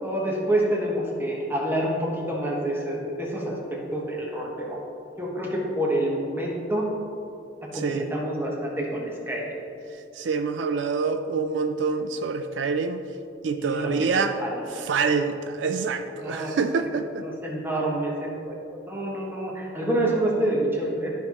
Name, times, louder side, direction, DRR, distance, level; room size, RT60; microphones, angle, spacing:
voice 1, 0.0-4.8 5.2-6.9 7.7-9.5 13.6-14.9 16.2-16.6 17.2-18.5 18.9-21.1, right 1 dB, 10° right, -3 dB, 1.3 m, -27 dB
voice 2, 7.7-8.1 10.1-13.0 13.4-14.4 14.7-17.3, right 5 dB, 75° right, 8 dB, 0.4 m, -26 dB
12.5 x 5.7 x 3.1 m, 2.7 s
head